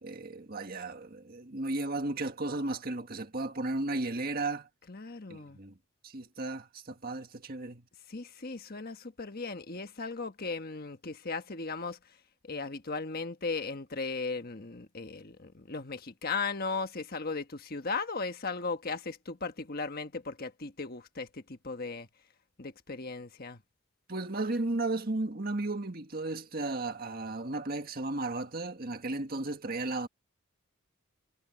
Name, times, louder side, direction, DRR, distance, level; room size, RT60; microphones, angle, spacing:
voice 1, 0.0-4.7 5.3-5.7 6.0-7.8 24.1-30.1, right 2 dB, 45° right, 1.8 m, -34 dB
voice 2, 4.9-5.6 8.1-12.2 12.4-22.1 22.6-23.6, left 4 dB, 45° left, 1.4 m, -37 dB
head